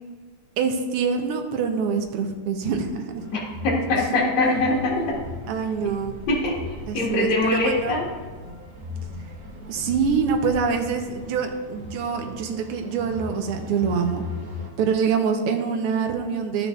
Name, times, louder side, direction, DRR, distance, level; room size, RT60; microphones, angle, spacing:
voice 1, 0.6-3.2 5.5-6.2 6.9-8.0 9.7-14.2 14.8-16.7, right 6 dB, 85° right, 5 dB, 1.7 m, -25 dB
sound 1, 3.2-14.7, left 2 dB, 70° right, 2.3 m, -37 dB
voice 2, 3.6-5.2 6.3-8.1, left 2 dB, 70° left, -5 dB, 2.5 m, -23 dB
12.5 x 5.9 x 2.4 m, 1.4 s
omnidirectional pair, 2.4 m